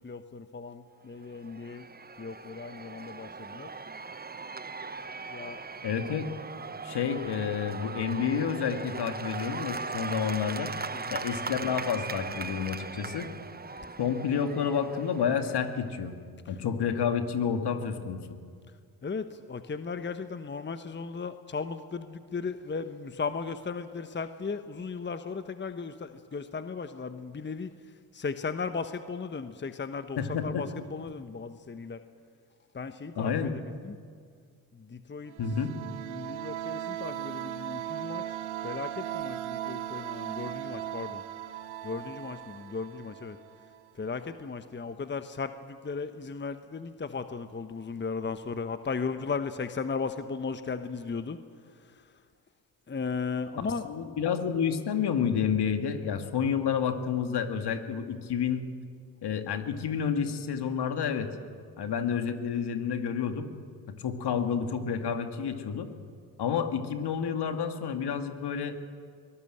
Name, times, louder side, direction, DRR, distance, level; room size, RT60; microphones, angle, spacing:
voice 1, 0.0-1.9 2.2-3.7 5.3-5.6 10.9-11.2 16.4-16.6 19.0-32.0 32.7-34.0 34.7-35.3 36.0-38.4 38.6-41.2 41.8-43.4 43.9-52.2 52.9-53.8, left 5 dB, 25° left, 10 dB, 1.2 m, -36 dB
Cheering / Applause / Crowd, 1.2-15.9, right 4 dB, 20° right, 1.1 m, -39 dB
voice 2, 5.8-6.3 6.8-10.7 11.1-13.3 14.0-16.1 16.5-18.4 30.2-30.6 33.2-33.5 35.4-35.7 54.0-58.6 59.2-61.3 61.8-63.5 63.9-65.9 66.4-68.8, left 7 dB, 55° left, 7 dB, 2.3 m, -29 dB
sound 1, 35.3-43.9, right 11 dB, 75° right, 1.3 m, -38 dB
22.5 x 18.5 x 8.0 m, 2.1 s
hypercardioid pair, 55°, 46 cm